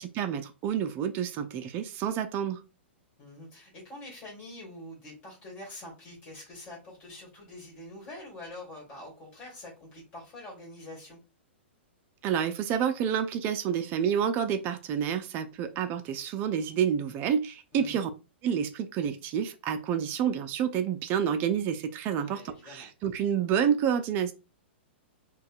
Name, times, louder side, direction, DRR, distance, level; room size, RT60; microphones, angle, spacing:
voice 1, 0.0-2.6 12.2-18.1 18.4-24.3, right 8 dB, 35° right, 8 dB, 0.4 m, -29 dB
voice 2, 3.2-11.2 17.7-18.1 22.2-22.9, left 1 dB, 30° left, -3 dB, 2.0 m, -45 dB
5.2 x 2.3 x 2.5 m, 0.29 s
hypercardioid pair, 120°, 6 cm